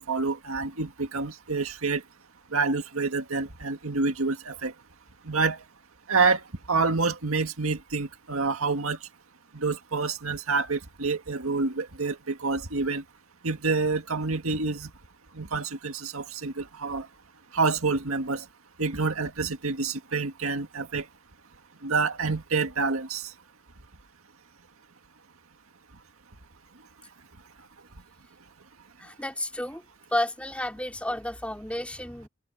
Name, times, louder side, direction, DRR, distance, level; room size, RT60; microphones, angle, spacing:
voice 1, 0.0-2.0 2.5-4.7 5.3-5.6 6.1-9.0 9.5-13.0 13.4-14.9 15.3-17.1 17.5-18.4 18.8-21.1 21.8-23.3, right 4 dB, 90° right, 1.9 m, -27 dB
voice 2, 29.0-29.8 30.1-32.3, left 1 dB, 5° left, 3.6 m, -31 dB
open air
head